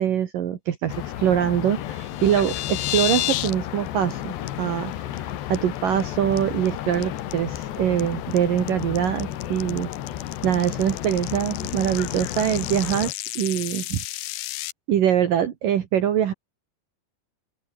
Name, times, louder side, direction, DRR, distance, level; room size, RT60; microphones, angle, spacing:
voice 1, 0.0-9.9 10.4-14.0 14.9-16.3, right 10 dB, 60° right, 3.2 m, -24 dB
sound 1, 0.9-13.1, left 12 dB, 85° left, 3.9 m, -32 dB
sound 2, 1.9-3.5 3.9-4.1 4.5-4.6 4.9-5.2 5.5-6.0 6.4-14.7, left 16 dB, 70° left, 2.2 m, -31 dB
open air
omnidirectional pair, 4.7 m